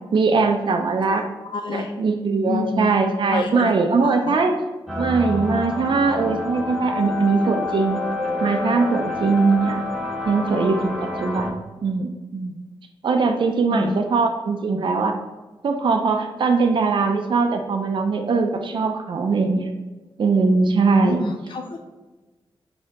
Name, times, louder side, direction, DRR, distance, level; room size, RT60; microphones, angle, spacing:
voice 1, 0.1-1.2 1.7-4.6 5.0-8.0 8.4-9.8 10.2-10.9 11.2-12.5 13.0-15.1 15.6-19.7 20.2-21.3, right 4 dB, 60° right, 4 dB, 0.4 m, -21 dB
voice 2, 1.1-1.9 2.5-2.9 3.3-3.7 4.0-4.4 13.7-14.0 21.0-21.8, left 4 dB, 60° left, 4 dB, 0.4 m, -29 dB
sound 1, 4.9-11.5, left 2 dB, ahead, 0.8 m, -28 dB
4.5 x 2.8 x 3.5 m, 1.2 s
wide cardioid pair, 85°, 9 cm